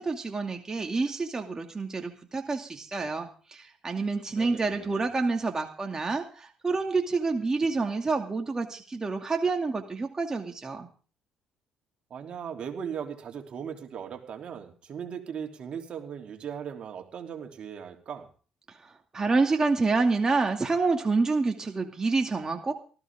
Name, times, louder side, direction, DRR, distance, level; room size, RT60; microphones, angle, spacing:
voice 1, 0.0-10.9 19.1-22.7, right 3 dB, 30° right, 3 dB, 2.4 m, -28 dB
voice 2, 4.4-5.0 12.1-18.3, right 7 dB, 55° right, 3 dB, 3.2 m, -38 dB
19.0 x 14.5 x 3.7 m, 0.39 s
supercardioid pair, 60°, 2 cm